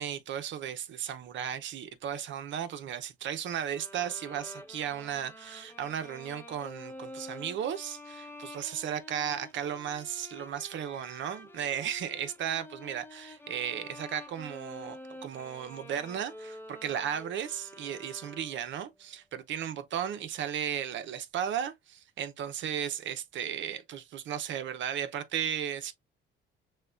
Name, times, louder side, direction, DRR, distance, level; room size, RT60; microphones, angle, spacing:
voice 1, 0.0-25.9, right 9 dB, 70° right, 0.7 m, -35 dB
sound 1, 3.7-18.8, left 1 dB, 10° left, 0.8 m, -48 dB
6.5 x 2.2 x 2.4 m
cardioid pair, 90°, 20 cm